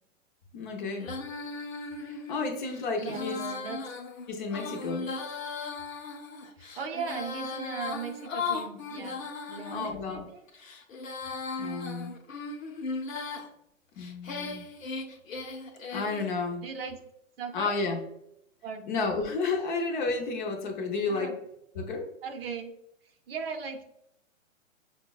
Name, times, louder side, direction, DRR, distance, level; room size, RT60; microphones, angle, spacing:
voice 1, 0.5-1.1 2.0-3.4 4.3-5.1 9.7-10.2 11.6-12.2 14.0-14.6 15.9-16.7 17.5-18.0 18.9-21.3 21.8-22.1, left 4 dB, 40° left, 3 dB, 0.7 m, -31 dB
Female singing, 1.0-9.9 10.5-13.5 14.0-16.3, left 4 dB, 85° left, 0.8 m, -37 dB
voice 2, 3.0-3.8 6.6-10.4 16.6-17.0 17.4-17.7 18.6-18.9 21.1-21.3 22.2-22.7 23.3-23.8, right 5 dB, 50° right, 5 dB, 0.6 m, -38 dB
5.2 x 2.1 x 2.2 m, 0.79 s
hypercardioid pair, 135°, 39 cm